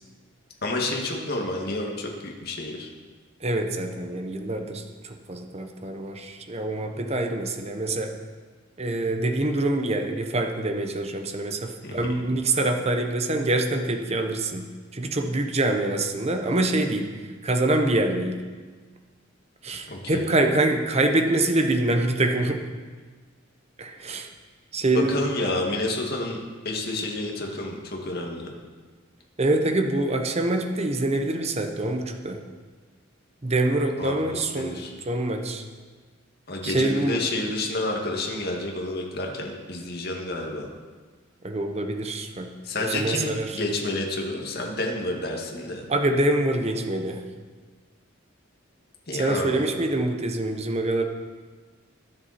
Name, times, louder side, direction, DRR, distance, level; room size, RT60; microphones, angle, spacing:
voice 1, 0.6-2.9 11.8-12.2 19.9-20.2 24.9-26.4 26.6-28.5 34.0-34.9 36.5-40.7 42.6-45.9 49.1-49.7, left 2 dB, 50° left, 0 dB, 2.1 m, -29 dB
voice 2, 3.4-8.1 8.8-17.2 17.4-18.4 19.6-22.6 23.8-24.3 24.7-25.5 29.4-32.4 33.4-35.6 36.6-37.2 41.4-43.6 45.9-47.2 49.1-51.0, right 2 dB, 30° right, 5 dB, 1.0 m, -25 dB
22.0 x 7.9 x 4.3 m, 1.5 s
head